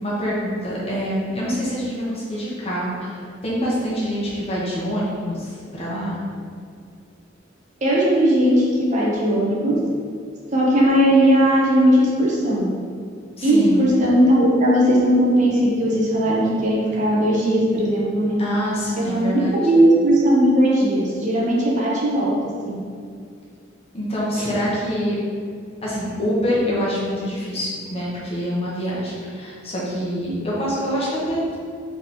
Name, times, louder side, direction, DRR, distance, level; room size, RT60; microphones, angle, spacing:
voice 1, 0.0-6.2 13.4-13.8 18.4-19.6 23.9-25.2 25.8-31.6, equal, 30° left, -6 dB, 0.9 m, -25 dB
voice 2, 7.8-9.8 10.5-12.7 13.4-18.4 19.0-22.3 22.7-22.8 24.4-24.5, equal, 40° right, -4 dB, 0.7 m, -18 dB
3.4 x 2.9 x 4.2 m, 2.2 s
head